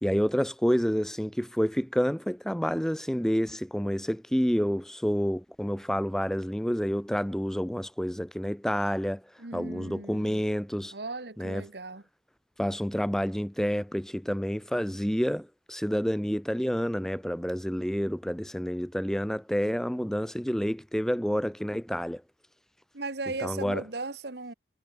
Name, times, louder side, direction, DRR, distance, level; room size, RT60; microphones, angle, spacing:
voice 1, 0.0-9.2 9.5-10.9 11.4-11.6 12.6-22.2 23.4-23.8, equal, 5° left, 0.6 m, -29 dB
voice 2, 9.4-10.4 10.9-12.0 22.9-24.5, right 3 dB, 65° right, 1.5 m, -37 dB
head